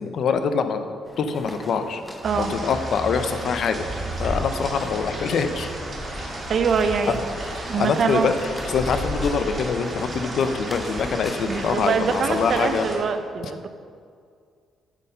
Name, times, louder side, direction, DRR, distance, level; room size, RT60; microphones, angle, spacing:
voice 1, 0.0-2.0 2.4-3.9 4.2-5.7 7.1-7.2 7.8-12.9, left 5 dB, 65° left, 9 dB, 0.6 m, -24 dB
sound 1, 1.1-12.9, left 1 dB, 10° left, 0.8 m, -37 dB
sound 2, 2.2-13.0, right 2 dB, 30° right, 2.1 m, -34 dB
voice 2, 2.2-2.5 6.5-7.2 7.7-8.3 11.5-13.7, right 6 dB, 55° right, 9 dB, 0.6 m, -24 dB
9.0 x 4.2 x 5.5 m, 2.2 s
cardioid pair, 90°, 0 cm